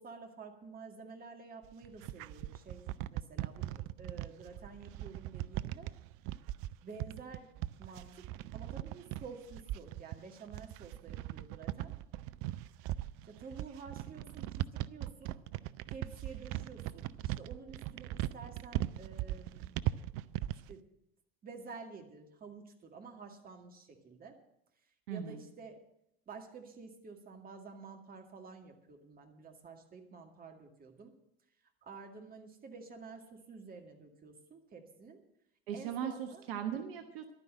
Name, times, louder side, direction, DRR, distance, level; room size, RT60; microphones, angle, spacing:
voice 1, 0.0-5.9 6.8-11.9 13.3-15.4 15.9-19.8 20.7-20.9 21.4-24.4 25.1-25.8 26.3-31.1 31.8-35.2 35.7-36.4, right 4 dB, 30° right, 3 dB, 2.1 m, -50 dB
sound 1, 1.6-20.7, right 15 dB, 45° right, 0.5 m, -39 dB
voice 2, 25.1-25.4 35.7-37.3, right 8 dB, 65° right, 6 dB, 1.2 m, -38 dB
11.5 x 9.7 x 7.7 m, 0.80 s
figure-of-eight pair, 70°, 31 cm